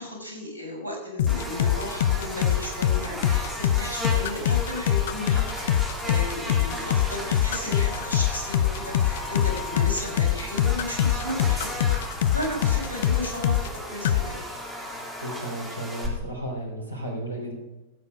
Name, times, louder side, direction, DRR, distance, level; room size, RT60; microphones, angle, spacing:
voice 1, 0.0-11.7 12.3-14.4, left 1 dB, 80° left, -1 dB, 5.4 m, -34 dB
sound 1, 1.2-13.8 14.1-14.3, left 11 dB, 55° left, 0.6 m, -23 dB
Buzz, 1.3-16.1, equal, ahead, 3.6 m, -35 dB
voice 2, 15.2-17.6, right 1 dB, 80° right, 1 dB, 3.5 m, -34 dB
15.0 x 8.2 x 5.1 m, 1.0 s
figure-of-eight pair, 90°, 0 cm